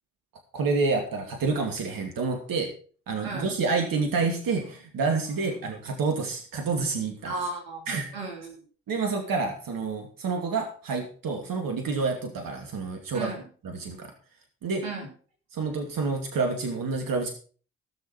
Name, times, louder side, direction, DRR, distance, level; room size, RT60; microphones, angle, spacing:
voice 1, 0.5-2.7 3.1-7.3 7.9-8.1 8.9-13.3 13.6-14.1 14.6-14.8 15.5-17.3, right 4 dB, 60° right, 4 dB, 2.6 m, -28 dB
voice 2, 7.2-8.6 13.1-13.4 14.8-15.1, right 3 dB, 90° right, 0 dB, 3.9 m, -35 dB
16.5 x 6.6 x 6.1 m, 0.41 s
hypercardioid pair, 45°, 39 cm